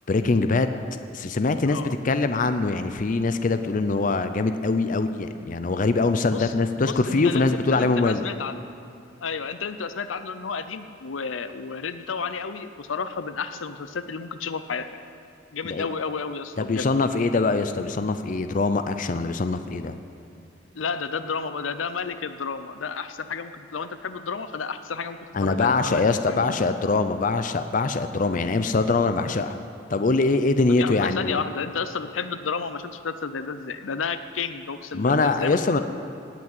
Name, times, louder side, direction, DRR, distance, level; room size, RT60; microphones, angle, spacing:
voice 1, 0.1-0.7 1.1-8.2 15.6-15.9 16.6-20.0 25.3-29.6 29.9-31.4 34.9-35.8, left 3 dB, 45° left, 9 dB, 0.5 m, -23 dB
voice 2, 6.8-8.7 9.2-14.9 15.5-16.9 20.7-26.5 30.7-35.8, left 5 dB, 90° left, 11 dB, 0.6 m, -32 dB
17.5 x 6.1 x 9.0 m, 2.5 s
head